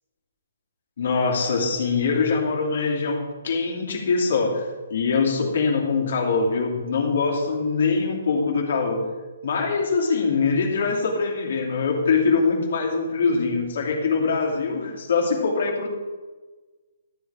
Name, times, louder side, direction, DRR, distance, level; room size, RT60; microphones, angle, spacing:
voice 1, 1.0-9.0 9.4-15.9, left 4 dB, 45° left, -1 dB, 2.7 m, -23 dB
12.5 x 9.7 x 3.5 m, 1.3 s
hypercardioid pair, 180°, 0 cm